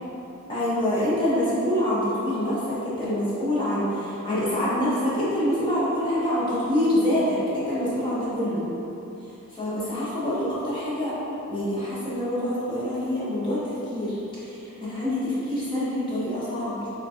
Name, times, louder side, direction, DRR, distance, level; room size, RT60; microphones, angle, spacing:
voice 1, 0.5-8.7 9.5-11.1 11.5-16.9, left 1 dB, 20° left, -11 dB, 1.3 m, -26 dB
4.1 x 3.8 x 2.8 m, 3.0 s
head